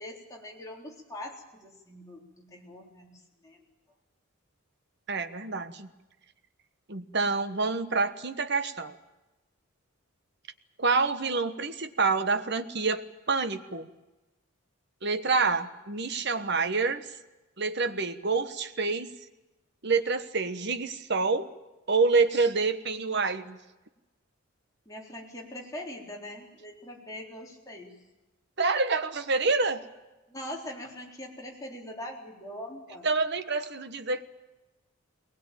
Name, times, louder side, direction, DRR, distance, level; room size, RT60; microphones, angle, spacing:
voice 1, 0.0-3.6 24.9-28.0 30.3-33.2, left 1 dB, 15° left, -2 dB, 3.9 m, -42 dB
voice 2, 5.1-5.9 6.9-8.9 10.8-13.0 13.3-13.9 15.0-17.1 17.6-19.1 19.8-21.5 21.9-23.6 28.6-29.8 33.0-34.2, right 4 dB, 50° right, 10 dB, 1.3 m, -27 dB
21.5 x 20.0 x 9.1 m, 1.1 s
head